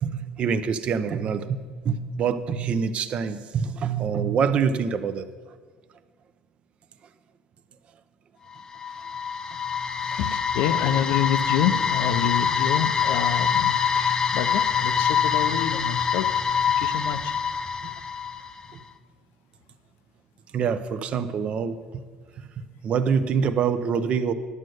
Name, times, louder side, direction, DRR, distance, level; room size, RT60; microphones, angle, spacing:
voice 1, 0.0-5.3 20.5-21.8 22.8-24.3, right 6 dB, 40° right, 11 dB, 0.6 m, -25 dB
sound 1, 8.5-18.6, left 7 dB, 20° left, 0.4 m, -25 dB
voice 2, 10.0-17.3, left 9 dB, 80° left, 11 dB, 0.7 m, -28 dB
11.0 x 6.5 x 7.8 m, 1.5 s
cardioid pair, 145°, 3 cm